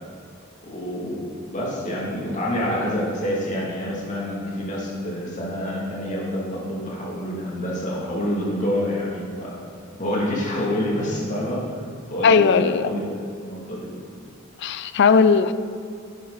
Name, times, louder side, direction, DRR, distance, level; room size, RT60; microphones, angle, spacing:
voice 1, 0.6-9.6 10.0-11.8 12.1-13.0 13.4-13.9, equal, 40° left, -4 dB, 2.5 m, -27 dB
voice 2, 12.2-12.9 14.6-15.5, left 5 dB, 60° left, 13 dB, 0.4 m, -17 dB
10.0 x 9.9 x 4.1 m, 2.2 s
head